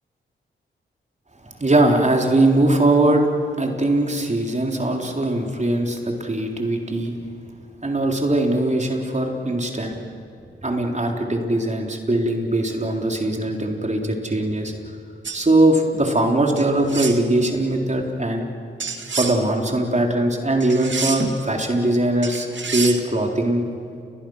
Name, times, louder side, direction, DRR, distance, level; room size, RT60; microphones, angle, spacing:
voice 1, 1.4-3.3 3.6-7.1 7.8-10.0 10.6-14.7 15.3-18.5 19.1-23.7, right 1 dB, 35° right, 2 dB, 3.9 m, -21 dB
sound 1, 15.2-15.4 16.6-17.2 18.8-19.4 20.6-21.4 22.2-23.0, right 5 dB, 65° right, 2.1 m, -28 dB
29.5 x 21.0 x 6.6 m, 2.5 s
cardioid pair, 45°, 21 cm